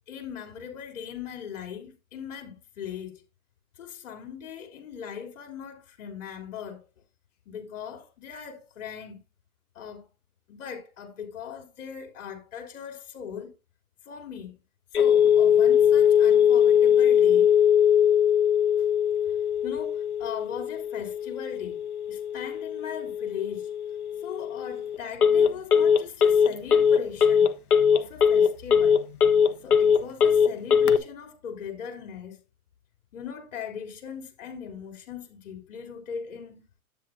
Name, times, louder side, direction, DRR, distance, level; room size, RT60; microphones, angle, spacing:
voice 1, 0.1-3.2 3.8-6.9 7.5-9.2 9.7-10.0 10.5-13.5 14.0-14.6 14.9-17.6 19.3-19.4 19.6-23.7 24.2-27.5 27.9-29.0 29.6-32.4 33.1-36.6, left 7 dB, 55° left, 3.5 m, -39 dB
Telephone, 14.9-31.0, left 8 dB, 85° left, 1.4 m, -21 dB
12.0 x 9.2 x 2.7 m
hypercardioid pair, 125°, 44 cm